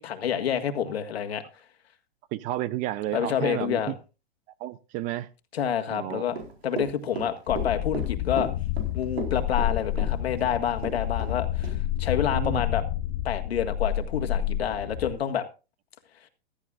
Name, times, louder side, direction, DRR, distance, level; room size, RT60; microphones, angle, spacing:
voice 1, 0.0-1.4 3.1-3.9 5.5-6.4 6.6-8.5 8.9-11.7 12.0-12.8 13.3-15.4, left 9 dB, 80° left, 1.8 m, -28 dB
voice 2, 2.3-3.9 4.6-5.3 5.9-6.4 12.3-12.6, right 14 dB, 25° right, 0.5 m, -32 dB
Run / Walk footsteps, 6.3-11.4 11.6-11.8, right 4 dB, 90° right, 4.3 m, -35 dB
sound 1, 7.5-15.1, left 12 dB, 40° left, 0.7 m, -29 dB
15.5 x 13.0 x 2.5 m
hypercardioid pair, 135°, 31 cm